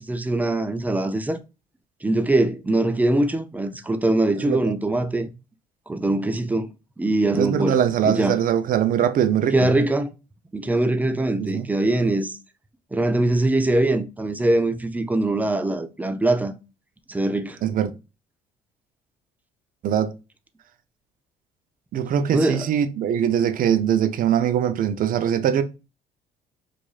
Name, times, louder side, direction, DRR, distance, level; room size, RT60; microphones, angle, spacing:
voice 1, 0.0-1.4 2.0-5.3 5.9-6.7 7.0-7.8 8.0-8.4 9.5-10.1 10.5-12.4 12.9-16.5 17.1-17.6 22.3-22.7, right 2 dB, 10° right, 0.4 m, -22 dB
voice 2, 4.4-4.7 7.3-9.7 11.4-11.7 17.6-17.9 19.8-20.1 21.9-25.6, right 9 dB, 55° right, 0.6 m, -22 dB
4.7 x 2.6 x 2.3 m
cardioid pair, 110°, 17 cm